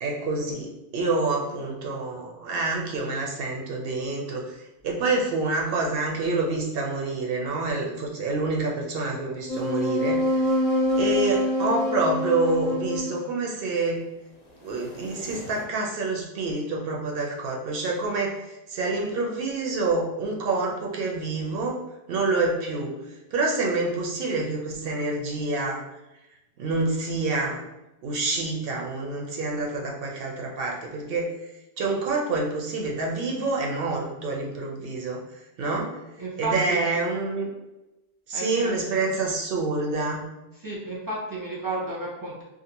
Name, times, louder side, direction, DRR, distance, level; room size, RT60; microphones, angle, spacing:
voice 1, 0.0-10.5 10.9-14.0 14.6-21.8 22.1-22.9 23.3-25.8 26.6-27.7 28.0-31.3 31.8-35.2 35.6-35.9 36.4-37.5 38.3-40.3, right 3 dB, 70° right, 0 dB, 0.7 m, -27 dB
sound 1, 9.5-13.3 14.9-15.6, left 1 dB, 50° left, 0.6 m, -26 dB
voice 2, 36.2-36.8 38.3-38.7 40.6-42.4, right 2 dB, 25° right, -6 dB, 0.6 m, -32 dB
2.5 x 2.4 x 2.8 m, 0.98 s
omnidirectional pair, 1.1 m